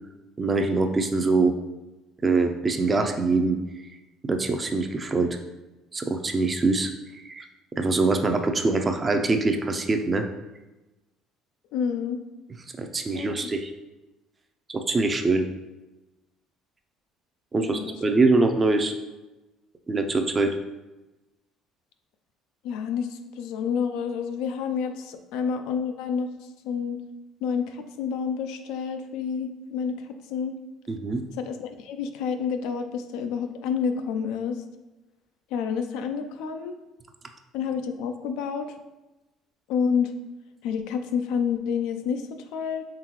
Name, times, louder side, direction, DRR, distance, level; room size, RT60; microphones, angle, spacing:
voice 1, 0.4-1.5 2.2-3.6 4.2-5.4 5.9-7.4 7.8-10.3 12.8-13.7 14.7-15.5 17.5-18.9 19.9-20.5 30.9-31.2, right 3 dB, 25° right, 5 dB, 0.5 m, -23 dB
voice 2, 11.7-12.2 13.1-13.5 17.6-18.0 22.6-26.3 26.6-27.0 27.4-30.6 31.4-34.6 35.5-36.8 37.5-38.7 39.7-40.1 40.6-42.9, left 6 dB, 80° left, 7 dB, 0.4 m, -29 dB
3.7 x 3.6 x 3.0 m, 1.1 s
cardioid pair, 105°, 0 cm